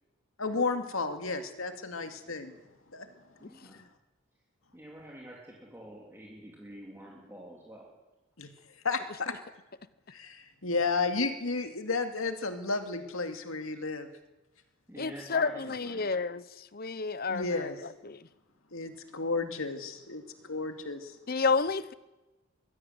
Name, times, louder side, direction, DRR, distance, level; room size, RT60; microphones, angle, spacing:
voice 1, 0.4-2.6 2.9-3.8 8.4-9.3 10.1-14.1 17.3-17.9 18.7-21.2, left 3 dB, 75° left, 2.3 m, -33 dB
voice 2, 3.4-3.8 4.7-7.8 14.9-16.1, right 1 dB, 10° right, 3.3 m, -47 dB
voice 3, 15.0-16.4 16.7-17.4 18.1-18.2 21.3-21.9, left 4 dB, 45° left, 0.8 m, -29 dB
23.0 x 15.5 x 8.0 m
head